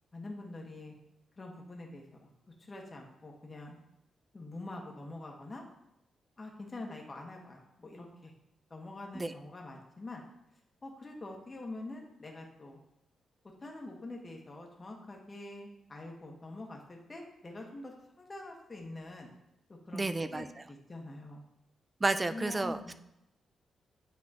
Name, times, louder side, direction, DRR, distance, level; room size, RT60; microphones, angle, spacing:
voice 1, 0.1-0.9 1.4-2.3 2.6-3.8 4.3-5.6 6.4-8.3 8.7-10.2 10.8-12.8 13.6-19.3 19.7-21.4 22.3-22.9, left 2 dB, 25° left, 0 dB, 1.3 m, -45 dB
voice 2, 19.9-20.5 22.0-22.9, right 2 dB, 20° right, 11 dB, 0.4 m, -31 dB
9.5 x 4.1 x 2.9 m, 0.86 s
cardioid pair, 110°, 0 cm